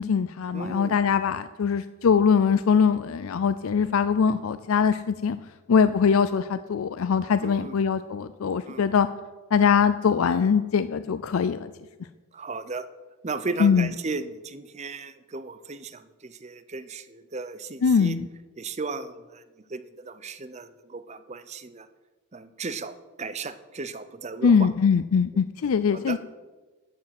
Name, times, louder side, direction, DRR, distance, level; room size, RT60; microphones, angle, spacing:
voice 1, 0.0-5.4 5.7-9.1 9.5-11.7 13.6-13.9 17.8-18.3 24.4-26.2, left 6 dB, 75° left, 13 dB, 0.4 m, -22 dB
voice 2, 0.5-1.0 7.4-7.8 8.7-8.9 12.3-12.9 13.2-18.2 18.6-19.4 19.7-21.9 22.3-24.7 25.9-26.2, right 3 dB, 30° right, 12 dB, 0.6 m, -35 dB
11.5 x 7.3 x 7.7 m, 1.2 s
head